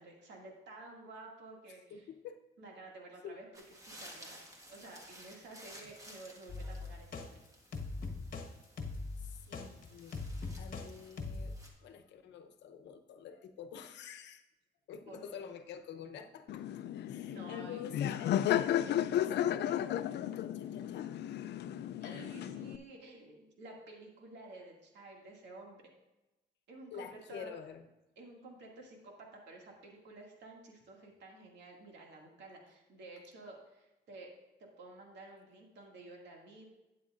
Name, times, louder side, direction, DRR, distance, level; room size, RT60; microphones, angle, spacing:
voice 1, 0.0-2.1 2.6-4.4 4.7-7.3 15.1-15.4 17.3-17.8 22.0-25.8 26.7-27.5 28.2-34.3 34.6-36.7, right 2 dB, 85° right, 0 dB, 2.2 m, -52 dB
voice 2, 1.9-2.4 3.2-3.4 9.2-10.2 10.6-11.6 11.8-14.4 14.9-16.8 17.1-21.1 26.9-27.9, left 7 dB, 90° left, 7 dB, 0.8 m, -47 dB
sound 1, 3.5-11.7, equal, 20° right, 1.6 m, -55 dB
sound 2, 6.5-7.3 7.7-8.5 8.8-10.9 11.2-11.6, left 3 dB, 50° left, 1.3 m, -41 dB
Laughter, 16.5-22.8, left 11 dB, 75° left, 0.4 m, -34 dB
12.0 x 9.2 x 2.5 m, 1.0 s
cardioid pair, 125°, 18 cm